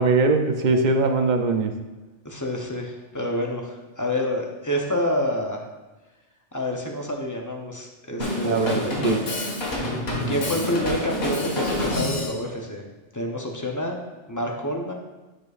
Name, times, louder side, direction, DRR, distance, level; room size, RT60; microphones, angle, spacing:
voice 1, 0.0-1.7 8.4-8.7 9.0-9.2, right 3 dB, 50° right, 6 dB, 0.6 m, -21 dB
voice 2, 2.2-5.6 6.5-8.9 9.8-12.8 13.1-14.0 14.3-14.9, left 1 dB, 20° left, 1 dB, 0.6 m, -28 dB
Drum kit, 8.2-12.4, left 1 dB, 55° left, 1.7 m, -27 dB
10.5 x 5.1 x 2.4 m, 1.1 s
omnidirectional pair, 1.2 m